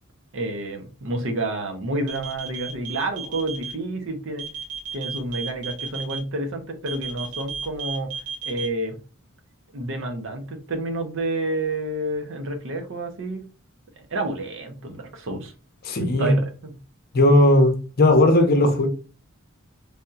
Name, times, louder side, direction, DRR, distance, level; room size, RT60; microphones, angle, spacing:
voice 1, 0.3-4.5 4.9-8.1 8.4-9.0 9.7-13.5 14.0-15.5 16.0-16.7, right 2 dB, 60° right, 0.7 m, -29 dB
sound 1, 2.0-3.7 4.4-6.2 6.9-8.7, right 7 dB, 85° right, 1.2 m, -33 dB
voice 2, 15.8-16.3 17.1-18.9, left 1 dB, 45° left, 0.7 m, -17 dB
3.4 x 2.7 x 2.3 m
head